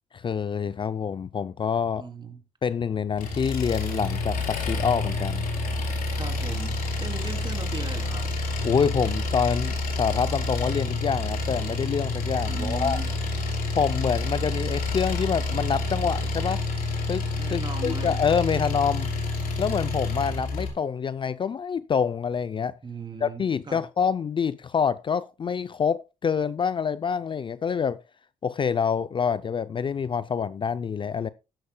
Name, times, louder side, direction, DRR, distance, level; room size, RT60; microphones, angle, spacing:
voice 1, 0.1-2.0 2.6-5.5 8.6-13.0 13.7-16.6 17.1-17.2 17.5-19.1 19.6-22.7 23.2-28.0 28.4-31.3, left 6 dB, 35° left, 0.4 m, -26 dB
voice 2, 2.0-2.4 6.2-8.2 12.5-13.1 17.3-18.2 22.8-23.8, right 4 dB, 30° right, 3.2 m, -37 dB
Engine, 3.2-20.7, left 2 dB, 70° left, 3.9 m, -28 dB
12.0 x 11.5 x 2.2 m
cardioid pair, 85°, 15 cm